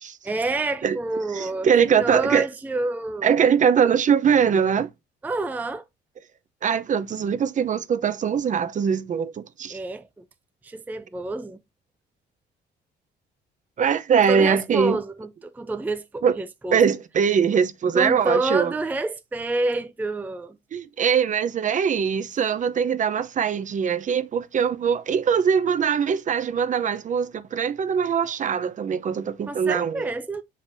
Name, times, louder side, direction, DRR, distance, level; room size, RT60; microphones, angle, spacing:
voice 1, 0.2-3.3 5.2-5.8 9.7-10.2 10.6-11.6 14.3-16.8 17.9-20.6 29.5-30.4, right 2 dB, 10° right, 0.5 m, -28 dB
voice 2, 1.3-2.5 3.2-4.9 6.6-9.8 13.8-15.0 16.2-16.4 16.7-18.7 20.7-30.1, right 7 dB, 40° right, 0.7 m, -22 dB
7.1 x 5.0 x 2.6 m
cardioid pair, 110°, 19 cm